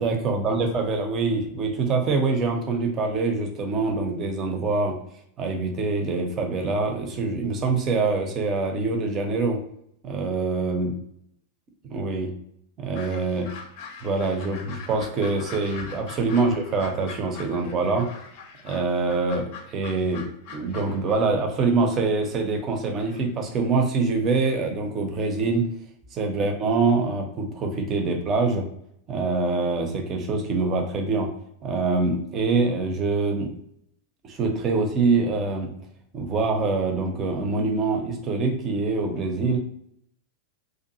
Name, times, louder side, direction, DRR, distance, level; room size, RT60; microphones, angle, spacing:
voice 1, 0.0-5.0 5.4-9.6 10.0-10.9 11.8-12.3 12.8-13.5 14.0-18.1 18.6-25.7 26.1-28.7 29.1-31.3 31.6-33.5 34.2-35.7 36.1-39.6, right 3 dB, 30° right, 3 dB, 0.6 m, -25 dB
sound 1, 12.9-21.3 21.6-23.3 24.4-24.5, left 5 dB, 45° left, 0.5 m, -43 dB
2.6 x 2.4 x 2.7 m, 0.72 s
figure-of-eight pair, 90°, 0 cm